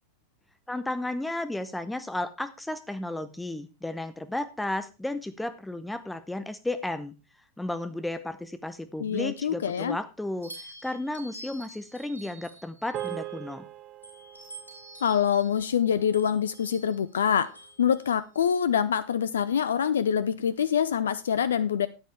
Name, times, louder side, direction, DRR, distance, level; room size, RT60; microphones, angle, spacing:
voice 1, 0.7-7.1 7.6-10.5 10.8-13.7, left 1 dB, 5° left, 0.8 m, -33 dB
voice 2, 9.0-10.0 15.0-21.9, left 8 dB, 65° left, 0.5 m, -25 dB
sound 1, 10.4-13.5 14.0-18.6, right 1 dB, 85° left, 4.3 m, -48 dB
sound 2, 12.9-17.5, right 14 dB, 30° right, 0.6 m, -42 dB
13.0 x 9.1 x 3.4 m
figure-of-eight pair, 90°, 0 cm